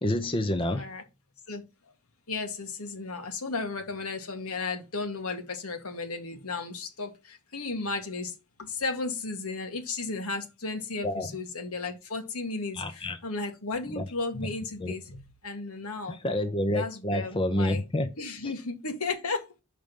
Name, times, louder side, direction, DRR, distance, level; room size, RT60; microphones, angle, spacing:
voice 1, 0.0-0.9 11.0-11.3 12.7-13.2 14.0-14.1 14.8-14.9 16.1-18.1 18.4-18.5, left 1 dB, 25° left, 0.7 m, -28 dB
voice 2, 0.7-1.0 1.5-1.6 2.3-16.2 16.7-17.8 18.2-19.6, left 3 dB, 80° left, 1.8 m, -34 dB
6.0 x 5.1 x 5.4 m
head